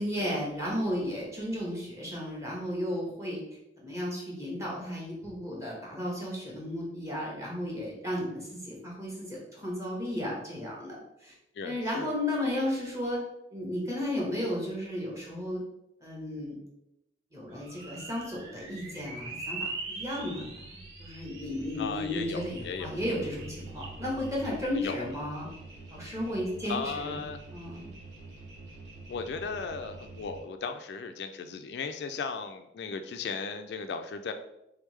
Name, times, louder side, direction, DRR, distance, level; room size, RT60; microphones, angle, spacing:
voice 1, 0.0-3.4 3.8-11.3 11.6-13.2 13.5-15.6 16.0-16.6 17.3-20.6 21.0-25.5 25.9-27.2 27.5-27.9, left 1 dB, 15° right, -4 dB, 1.2 m, -34 dB
voice 2, 11.6-12.1 21.8-23.0 24.7-25.1 26.7-27.4 29.1-34.3, left 5 dB, 65° left, 7 dB, 0.3 m, -36 dB
sound 1, 17.5-30.4, right 3 dB, 90° right, 1.1 m, -43 dB
3.5 x 3.5 x 3.2 m, 0.85 s
head